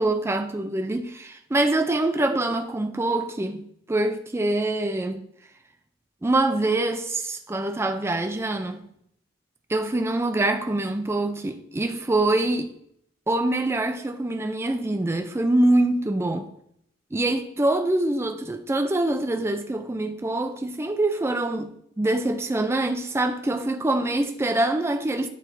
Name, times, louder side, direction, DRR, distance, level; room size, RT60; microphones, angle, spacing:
voice 1, 0.0-5.2 6.2-8.8 9.7-12.7 13.3-16.4 17.1-25.3, right 2 dB, 10° right, 0.3 m, -24 dB
9.0 x 4.3 x 2.6 m
head